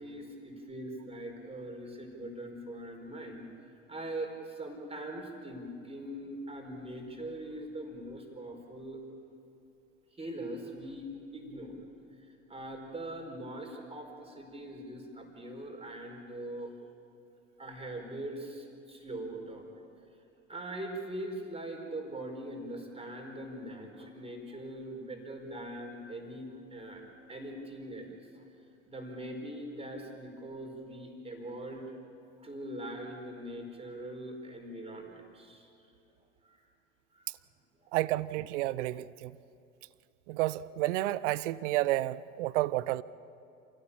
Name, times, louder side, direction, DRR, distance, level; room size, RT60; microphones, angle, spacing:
voice 1, 0.0-3.4 3.9-9.0 10.2-11.8 12.5-16.7 17.6-19.7 20.5-27.0 27.3-28.1 28.9-31.9 32.4-35.7 36.4-36.6 37.2-37.3, right 1 dB, 15° right, 2 dB, 4.5 m, -42 dB
voice 2, 37.9-39.3 40.3-43.0, right 16 dB, 65° right, 19 dB, 0.7 m, -30 dB
28.0 x 16.5 x 7.3 m, 2.6 s
hypercardioid pair, 75°, 38 cm